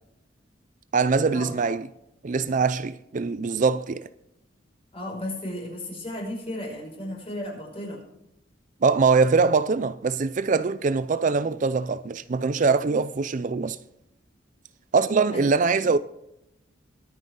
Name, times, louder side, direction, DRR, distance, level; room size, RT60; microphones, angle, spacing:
voice 1, 0.9-1.9 2.2-4.1 8.8-13.8 14.9-16.0, right 4 dB, 40° right, 0.4 m, -23 dB
voice 2, 4.9-8.0 15.3-15.6, left 1 dB, 30° left, 5.9 m, -34 dB
22.5 x 9.3 x 3.8 m
head